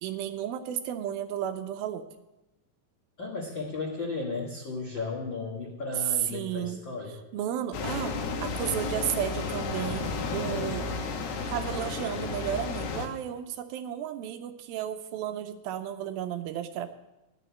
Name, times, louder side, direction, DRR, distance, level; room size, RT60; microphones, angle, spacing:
voice 1, 0.0-2.0 6.0-6.8 7.1-8.2 8.4-10.9 11.5-17.0, right 10 dB, 80° right, 9 dB, 2.2 m, -33 dB
voice 2, 3.2-7.2, left 3 dB, 70° left, -2 dB, 1.1 m, -35 dB
sound 1, 7.7-13.1, left 4 dB, 90° left, 3.1 m, -32 dB
11.0 x 6.7 x 7.9 m, 0.99 s
omnidirectional pair, 4.6 m